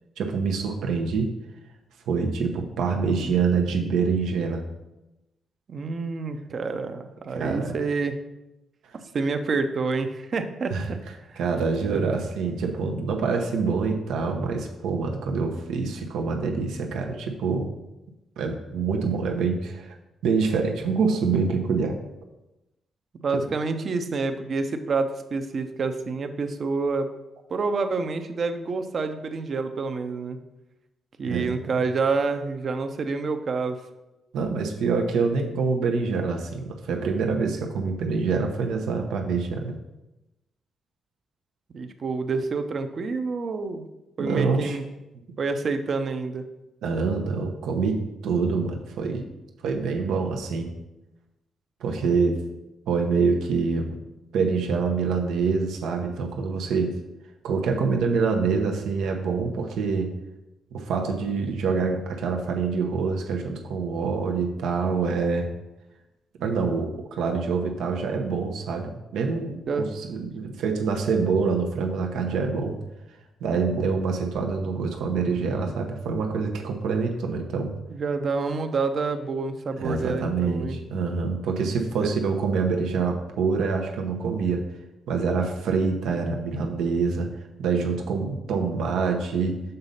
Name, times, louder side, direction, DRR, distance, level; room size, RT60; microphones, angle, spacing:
voice 1, 0.2-1.3 2.1-4.6 7.3-7.8 10.7-10.9 11.4-17.7 18.4-19.9 20.2-22.0 23.3-23.5 31.3-31.5 34.3-39.8 44.2-44.8 46.8-49.3 49.6-50.7 51.8-52.4 52.9-54.0 54.3-56.9 57.4-60.1 60.7-65.5 66.4-72.8 73.4-77.7 79.8-84.6 85.1-87.3 87.6-89.6, right 5 dB, 90° right, 2 dB, 0.9 m, -26 dB
voice 2, 5.7-8.2 8.9-11.0 11.3-11.4 11.9-12.0 23.2-27.1 27.5-30.4 31.2-33.8 41.7-43.9 44.2-44.8 45.4-46.4 69.7-69.9 70.3-70.4 77.9-80.8 82.0-82.1, right 4 dB, 50° right, 8 dB, 0.7 m, -28 dB
6.8 x 4.0 x 5.6 m, 0.97 s
cardioid pair, 100°, 0 cm